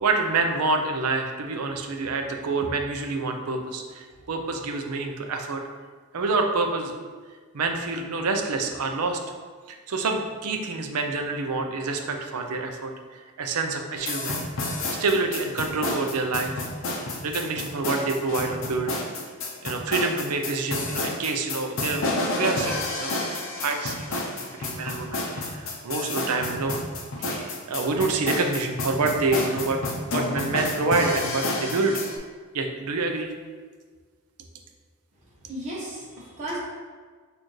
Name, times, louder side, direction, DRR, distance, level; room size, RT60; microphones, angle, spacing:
voice 1, 0.0-5.6 6.1-6.9 7.5-9.2 9.9-12.9 13.4-14.7 15.0-16.6 16.9-18.9 19.6-23.2 23.6-24.3 24.6-26.7 27.2-29.8 30.1-32.0 32.5-33.3, right 3 dB, 80° right, 4 dB, 0.5 m, -27 dB
sound 1, 14.0-32.2, left 2 dB, 60° left, 0.6 m, -30 dB
voice 2, 35.4-36.6, right 1 dB, 30° right, -8 dB, 0.8 m, -34 dB
6.3 x 2.6 x 3.1 m, 1.5 s
head